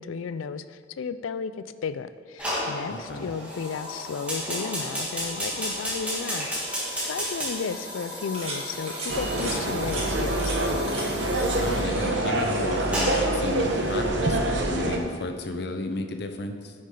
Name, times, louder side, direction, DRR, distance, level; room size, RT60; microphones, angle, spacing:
voice 1, 0.0-10.6, left 6 dB, 85° left, 13 dB, 0.4 m, -34 dB
Fire, 2.4-14.1, equal, 5° right, 1.9 m, -33 dB
voice 2, 2.9-3.3 11.6-16.7, left 2 dB, 55° left, 6 dB, 0.7 m, -33 dB
sound 1, 8.3-8.6 8.9-9.1 9.4-9.6 9.9-10.1 10.4-10.6 10.9-11.0 11.3-11.6 11.8-12.6 12.9-13.2, right 3 dB, 30° right, 1.7 m, -37 dB
sound 2, 9.1-15.0, right 1 dB, 65° right, 0.9 m, -26 dB
9.8 x 6.4 x 3.8 m, 2.2 s
head